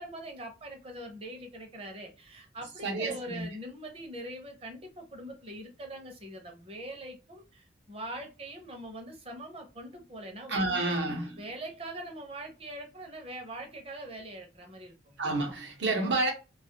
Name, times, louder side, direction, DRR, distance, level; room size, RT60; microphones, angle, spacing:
voice 1, 0.0-11.0 11.4-15.2, right 1 dB, 30° right, 0.6 m, -42 dB
voice 2, 2.8-3.5 10.5-11.4 15.2-16.3, right 2 dB, 70° right, 0.8 m, -29 dB
2.4 x 2.3 x 2.8 m
head